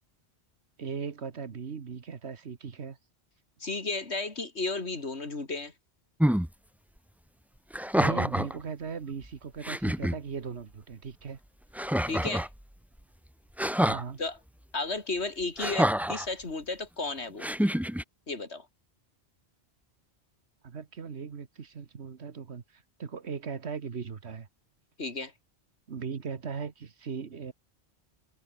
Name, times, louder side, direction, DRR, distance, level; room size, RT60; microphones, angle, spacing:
voice 1, 0.8-3.0 7.9-11.4 13.8-14.2 20.6-24.5 25.9-27.5, right 6 dB, 75° right, 1.7 m, -38 dB
voice 2, 3.6-5.7 12.1-12.5 14.2-14.4 14.7-17.5 18.3-18.7 25.0-25.3, left 3 dB, 80° left, 3.4 m, -33 dB
sound 1, 6.2-6.5 7.7-8.6 9.2-9.3 9.6-10.2 11.7-12.5 13.6-14.0 15.6-16.3 17.4-18.0, equal, ahead, 0.4 m, -27 dB
omnidirectional pair, 1.1 m